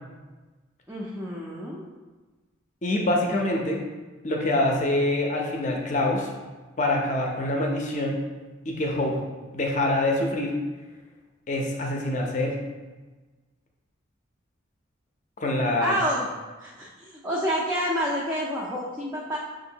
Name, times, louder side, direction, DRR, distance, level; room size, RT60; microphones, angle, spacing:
voice 1, 0.9-1.8 15.8-16.3 16.6-19.4, equal, 10° right, -5 dB, 0.4 m, -28 dB
voice 2, 2.8-3.8 4.2-6.3 6.8-8.2 8.7-9.2 9.5-10.5 11.5-12.6 15.4-16.0, left 1 dB, 35° left, 0 dB, 0.6 m, -25 dB
6.1 x 2.6 x 2.8 m, 1.3 s
head